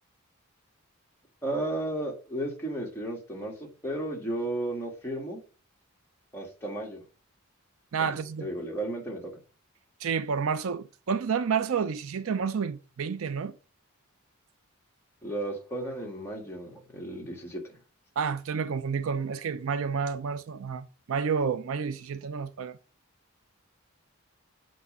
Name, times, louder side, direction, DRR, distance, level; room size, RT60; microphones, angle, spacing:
voice 1, 1.4-5.4 6.3-7.0 8.0-8.1 8.4-9.3 15.2-17.6, right 1 dB, 10° left, 1.8 m, -34 dB
voice 2, 7.9-8.5 10.0-13.5 18.2-22.8, right 6 dB, 70° right, 0.4 m, -30 dB
8.2 x 3.1 x 5.3 m
head